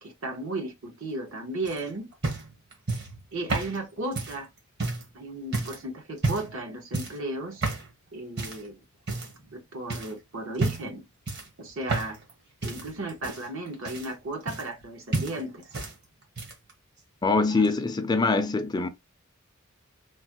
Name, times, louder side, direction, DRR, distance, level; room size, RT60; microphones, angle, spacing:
voice 1, 0.0-2.1 3.3-4.5 5.1-7.6 8.1-8.8 9.5-11.0 11.6-12.2 12.6-15.6 17.4-17.7, right 2 dB, 70° right, 1.0 m, -35 dB
sound 1, 1.6-5.1 5.5-5.8 6.2-6.6 6.9-7.2 7.6-7.9 8.4-8.7 9.1-9.6 9.9-10.1 10.5-11.0 11.3-12.3 12.6-14.9 15.1-15.9 16.2-16.7 17.6-17.7, right 3 dB, 55° right, 1.1 m, -31 dB
voice 2, 17.2-18.9, left 3 dB, 20° left, 0.4 m, -24 dB
3.1 x 2.1 x 2.9 m
head